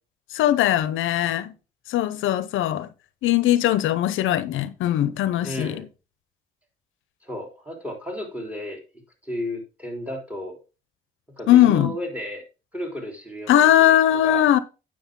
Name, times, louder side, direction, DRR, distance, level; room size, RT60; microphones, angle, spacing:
voice 1, 0.3-1.5 1.9-2.9 3.2-5.8 11.5-11.9 13.5-14.6, left 12 dB, 80° left, 0.7 m, -19 dB
voice 2, 5.4-5.8 7.2-10.6 11.4-12.4 12.7-14.5, left 1 dB, 5° right, 3.7 m, -34 dB
9.1 x 6.4 x 3.7 m
cardioid pair, 90°, 20 cm